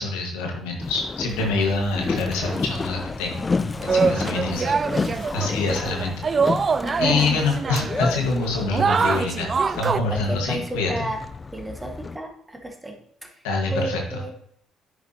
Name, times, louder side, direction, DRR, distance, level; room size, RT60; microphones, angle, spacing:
voice 1, 0.0-3.4 3.8-4.7 5.1-6.6 7.0-11.1 13.4-14.0, left 3 dB, 85° left, 1 dB, 1.6 m, -26 dB
Boat Water vehicle, 0.8-12.2, left 4 dB, 30° left, 0.4 m, -31 dB
sound 1, 2.1-2.9 3.5-10.0, right 5 dB, 40° right, 0.3 m, -25 dB
voice 2, 6.8-7.4 10.1-11.2 11.5-13.3 13.7-14.3, right 1 dB, 15° right, 3 dB, 1.7 m, -32 dB
9.8 x 6.1 x 2.9 m, 0.68 s
hypercardioid pair, 60°, 0 cm